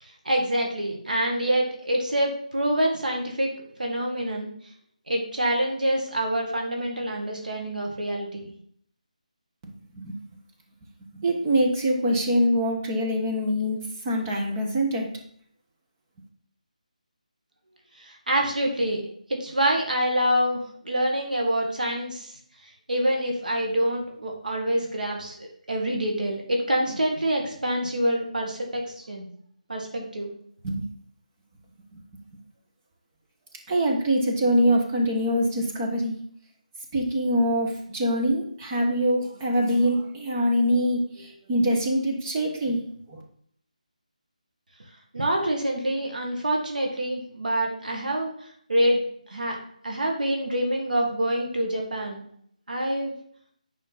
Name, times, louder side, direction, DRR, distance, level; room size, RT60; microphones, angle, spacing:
voice 1, 0.0-3.5 3.8-4.5 5.1-8.5 18.0-19.0 19.3-22.3 22.6-29.3 29.7-30.3 45.1-48.3 48.7-49.0 49.3-49.6 49.8-52.3 52.7-53.1, right 1 dB, 85° right, 0 dB, 2.2 m, -26 dB
voice 2, 9.6-10.2 11.1-13.8 14.0-15.1 30.6-30.8 31.9-32.0 33.7-36.2 36.9-42.8 43.1-43.2, equal, 20° right, -1 dB, 1.3 m, -24 dB
9.3 x 5.1 x 4.2 m, 0.63 s
figure-of-eight pair, 165°, 4 cm